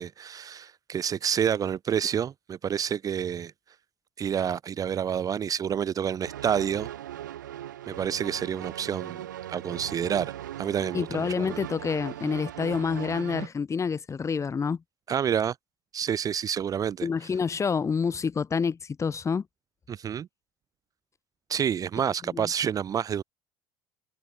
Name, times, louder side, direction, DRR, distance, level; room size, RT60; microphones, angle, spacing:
voice 1, 0.0-3.5 4.2-6.9 7.9-11.6 15.1-15.6 15.9-17.1 19.9-20.3 21.5-23.2, right 8 dB, 40° right, 0.6 m, -29 dB
sound 1, 6.3-13.5, right 12 dB, 90° right, 2.0 m, -39 dB
voice 2, 10.9-14.8 17.0-19.4 22.3-22.5, left 5 dB, 30° left, 4.1 m, -28 dB
hypercardioid pair, 70°, 10 cm